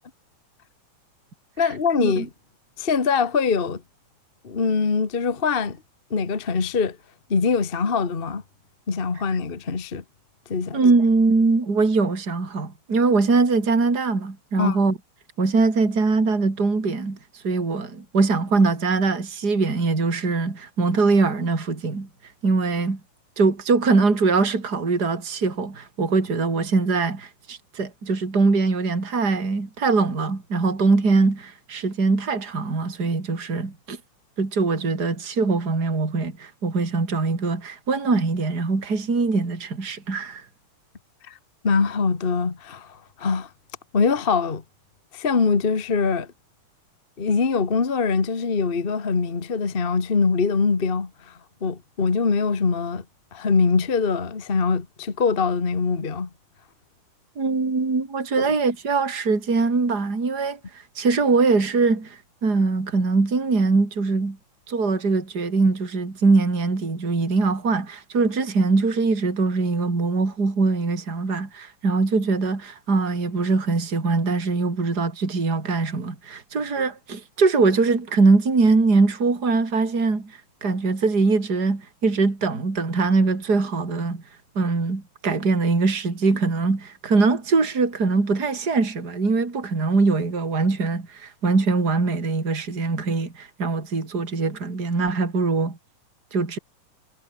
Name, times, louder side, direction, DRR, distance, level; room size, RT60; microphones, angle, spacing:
voice 1, 1.6-2.3 2.8-3.8 4.4-5.8 6.1-7.0 7.3-8.4 8.9-10.0 10.5-10.8 14.6-14.8 41.3-41.4 41.6-43.5 43.9-44.6 45.1-46.3 47.2-53.0 53.3-56.3, left 5 dB, 30° left, 1.1 m, -23 dB
voice 2, 10.7-15.0 15.4-22.1 22.4-23.0 23.4-34.0 34.4-40.4 57.4-60.6 61.0-64.4 64.7-84.2 84.5-95.8 96.3-96.6, right 3 dB, 30° right, 4.6 m, -22 dB
omnidirectional pair, 3.7 m